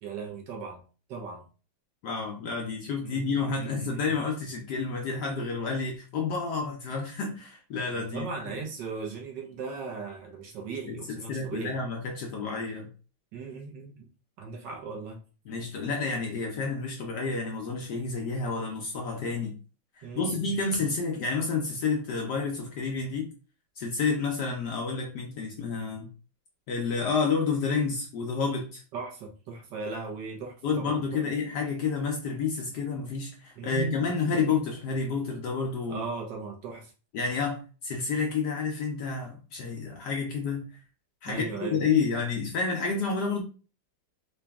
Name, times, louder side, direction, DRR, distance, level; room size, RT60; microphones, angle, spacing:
voice 1, 0.0-0.8 1.1-1.4 3.0-4.1 7.9-11.7 13.3-14.1 14.4-15.2 20.0-20.5 28.9-31.2 33.6-34.5 35.9-36.9 41.3-41.8, right 4 dB, 70° right, 1.2 m, -38 dB
voice 2, 2.0-8.3 8.5-8.6 10.9-12.9 15.5-19.5 20.0-23.3 23.8-26.1 26.7-28.8 30.6-36.0 37.1-40.7 41.2-43.4, left 4 dB, 70° left, 1.0 m, -30 dB
3.9 x 2.2 x 3.4 m
omnidirectional pair, 2.3 m